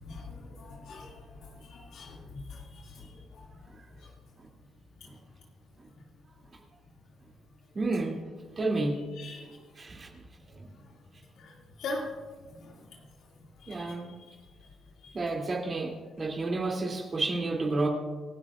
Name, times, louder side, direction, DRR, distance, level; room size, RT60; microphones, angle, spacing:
voice 1, 0.0-1.1 1.4-2.2 2.5-2.6 9.2-9.5 11.4-11.5 11.8-12.1 13.6-13.9, left 2 dB, 75° left, -1 dB, 2.3 m, -40 dB
voice 2, 7.7-8.2 8.6-9.1 9.8-10.1 10.6-10.7 13.7-14.1 15.1-17.9, right 2 dB, 35° right, -1 dB, 2.7 m, -30 dB
28.0 x 12.5 x 2.5 m, 1.4 s
cardioid pair, 90°, 0 cm